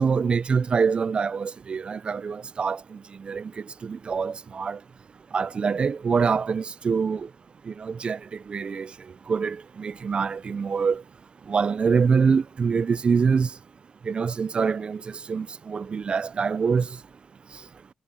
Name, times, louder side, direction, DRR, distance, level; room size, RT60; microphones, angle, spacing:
voice 1, 0.0-2.8 3.2-3.5 3.8-4.8 5.3-7.3 7.7-8.2 8.5-8.9 9.3-11.0 11.5-13.5 14.1-15.0 15.3-16.9, right 5 dB, 50° right, 0.8 m, -25 dB
hypercardioid pair, 40°, 2 cm